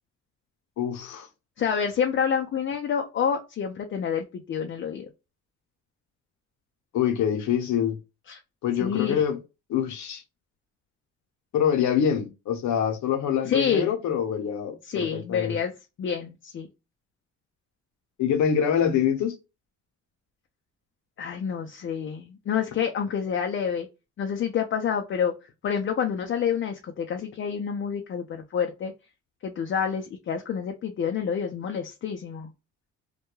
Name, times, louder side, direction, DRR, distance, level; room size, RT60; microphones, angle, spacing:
voice 1, 0.8-1.3 6.9-8.0 8.6-9.4 9.7-10.2 11.5-15.6 18.2-19.4, left 8 dB, 70° left, 0.8 m, -25 dB
voice 2, 1.6-5.1 8.3-8.4 8.8-9.2 13.4-13.9 14.8-16.7 21.2-23.9 24.2-25.3 25.6-28.9 29.4-32.5, left 7 dB, 40° left, 0.4 m, -28 dB
2.2 x 2.1 x 3.0 m
cardioid pair, 90°, 30 cm